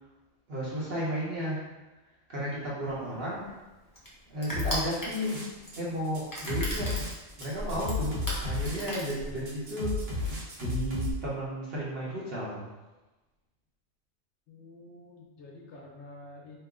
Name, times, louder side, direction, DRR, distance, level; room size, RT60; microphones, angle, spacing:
voice 1, 0.5-1.6 2.3-3.4 4.3-5.4 5.8-6.9 7.4-12.7, equal, 55° right, -7 dB, 1.0 m, -33 dB
Crushing, 2.9-9.7, equal, 30° left, 0.4 m, -38 dB
sound 1, 4.5-5.8 6.0-11.1, left 3 dB, 70° right, 1.3 m, -33 dB
voice 2, 14.5-16.6, left 2 dB, 65° left, -3 dB, 0.9 m, -49 dB
2.9 x 2.1 x 3.5 m, 1.1 s
omnidirectional pair, 1.3 m